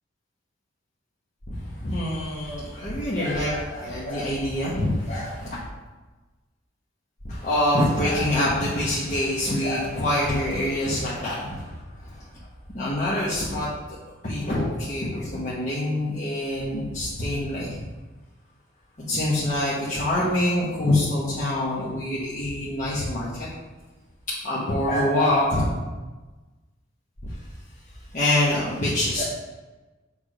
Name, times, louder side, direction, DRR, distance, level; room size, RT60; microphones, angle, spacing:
voice 1, 1.5-5.6 7.2-11.8 12.7-14.0 14.2-17.8 19.0-23.5 24.4-25.7 28.1-29.2, left 1 dB, 40° left, -8 dB, 1.1 m, -25 dB
6.5 x 3.5 x 4.9 m, 1.2 s
head